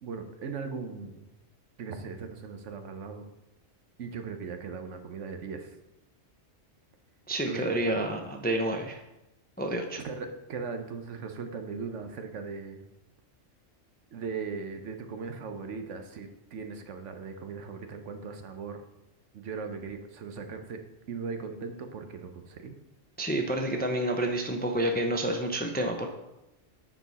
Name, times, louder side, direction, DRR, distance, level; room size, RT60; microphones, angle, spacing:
voice 1, 0.0-1.3 1.8-3.2 4.0-5.8 7.5-8.1 9.9-12.8 14.1-18.8 19.3-20.8 21.1-22.7, right 5 dB, 75° right, 7 dB, 1.1 m, -38 dB
voice 2, 7.3-9.0 9.6-10.0 23.2-26.1, right 1 dB, 10° left, 3 dB, 0.5 m, -29 dB
9.8 x 4.5 x 4.1 m, 0.93 s
omnidirectional pair, 1.3 m